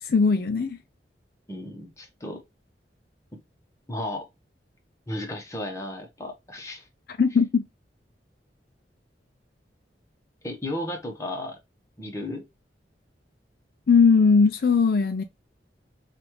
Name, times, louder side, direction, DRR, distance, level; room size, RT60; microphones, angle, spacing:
voice 1, 0.0-0.8 7.1-7.6 13.9-15.2, left 5 dB, 55° left, 0.4 m, -19 dB
voice 2, 1.5-2.4 3.9-4.2 5.1-6.9 10.4-11.6 12.0-12.4, left 1 dB, 15° left, 1.0 m, -34 dB
5.0 x 2.4 x 3.0 m
head